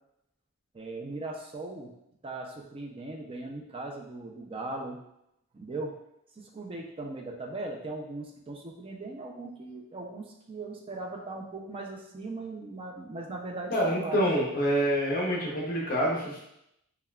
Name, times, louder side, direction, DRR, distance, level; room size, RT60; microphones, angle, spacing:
voice 1, 0.7-1.9 2.2-5.0 5.5-5.9 6.4-14.2, right 2 dB, 25° right, 1 dB, 0.4 m, -39 dB
voice 2, 13.7-16.4, equal, 40° left, -2 dB, 0.7 m, -27 dB
5.5 x 2.3 x 2.3 m, 0.81 s
head